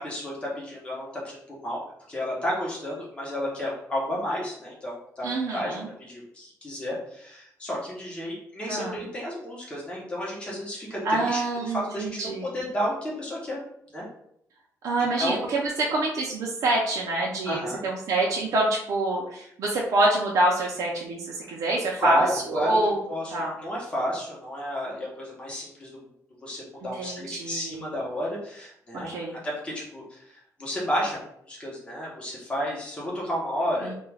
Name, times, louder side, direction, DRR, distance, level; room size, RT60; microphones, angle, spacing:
voice 1, 0.0-1.8 2.1-13.6 13.9-14.1 15.0-15.4 17.4-17.8 22.0-22.8 23.1-26.0 26.4-29.1 29.4-30.3 30.6-31.2 31.5-33.9, equal, 20° left, -5 dB, 0.8 m, -32 dB
voice 2, 5.2-5.9 8.7-9.0 11.0-12.5 14.8-23.0 23.3-23.5 27.0-27.9 28.9-29.4 33.8-33.9, right 2 dB, 65° right, -3 dB, 0.5 m, -26 dB
2.3 x 2.2 x 3.2 m, 0.71 s
cardioid pair, 155°, 6 cm